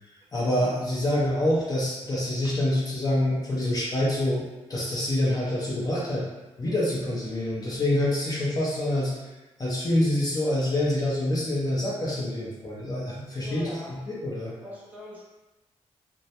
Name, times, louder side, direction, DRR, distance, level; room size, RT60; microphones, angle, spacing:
voice 1, 0.3-4.4 4.7-6.3 6.6-9.3 9.6-14.5, left 1 dB, 30° left, -5 dB, 0.6 m, -26 dB
voice 2, 13.4-13.9 14.6-15.2, left 1 dB, 15° right, -6 dB, 0.8 m, -42 dB
2.2 x 2.1 x 2.8 m, 1.1 s
cardioid pair, 90°, 12 cm